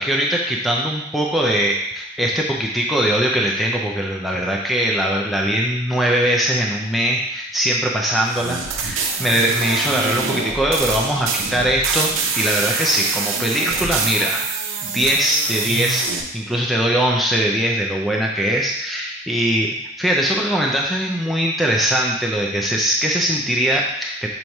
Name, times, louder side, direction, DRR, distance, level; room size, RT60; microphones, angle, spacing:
voice 1, 0.0-12.1 12.4-14.5 14.8-19.7 20.0-24.3, right 1 dB, ahead, -3 dB, 0.4 m, -21 dB
sound 1, 8.3-16.2, right 5 dB, 85° right, 0.7 m, -25 dB
5.8 x 3.1 x 5.3 m, 0.89 s
head